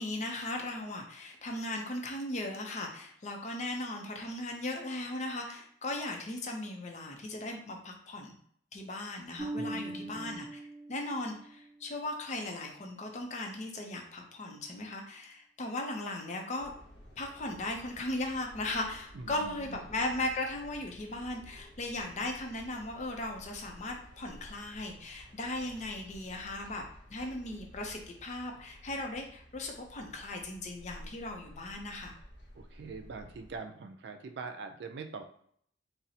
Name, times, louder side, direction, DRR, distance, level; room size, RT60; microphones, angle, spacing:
voice 1, 0.0-8.4 8.7-10.5 10.9-16.7 17.2-26.8 27.1-32.1, left 2 dB, 40° left, 2 dB, 0.5 m, -37 dB
Bass guitar, 9.4-12.0, right 2 dB, 20° right, 1.1 m, -41 dB
voice 2, 9.6-10.4 19.1-19.9 32.5-35.2, right 4 dB, 60° right, 6 dB, 0.4 m, -43 dB
sound 1, 16.6-33.6, equal, 70° left, 0.8 m, -53 dB
4.0 x 2.0 x 2.7 m, 0.63 s
head